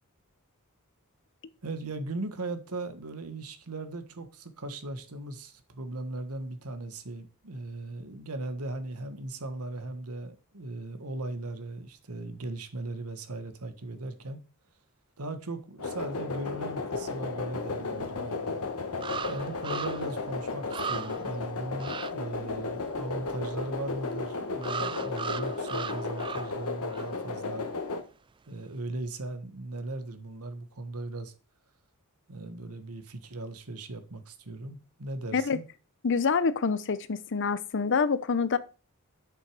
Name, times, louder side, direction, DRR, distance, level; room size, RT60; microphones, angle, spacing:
voice 1, 1.6-14.4 15.2-18.4 19.3-27.7 28.5-31.3 32.3-35.6, right 2 dB, 80° right, 1.3 m, -38 dB
sound 1, 15.8-28.0, left 3 dB, 85° left, 1.3 m, -34 dB
sound 2, 18.1-18.2 19.0-20.2 20.4-20.5 20.7-21.3 21.8-22.1 24.6-26.6 26.9-27.1, right 6 dB, 20° right, 0.3 m, -37 dB
voice 2, 36.0-38.6, left 5 dB, 55° left, 0.7 m, -26 dB
8.2 x 6.3 x 4.8 m
head